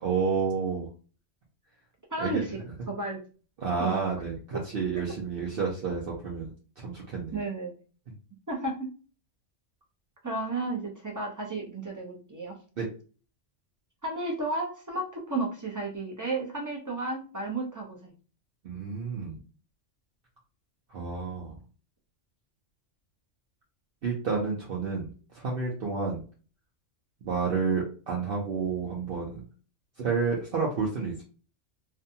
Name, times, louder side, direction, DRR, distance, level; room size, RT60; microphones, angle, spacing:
voice 1, 0.0-0.9 2.2-2.4 3.6-7.4 12.8-12.9 18.6-19.4 20.9-21.6 24.0-26.2 27.2-29.4 30.0-31.2, right 5 dB, 55° right, -3 dB, 0.8 m, -30 dB
voice 2, 2.1-3.2 3.8-4.1 4.5-4.6 7.3-7.7 8.5-8.9 10.2-12.5 14.0-18.1, right 2 dB, 25° right, -1 dB, 0.4 m, -33 dB
2.6 x 2.2 x 2.6 m, 0.37 s
omnidirectional pair, 1.3 m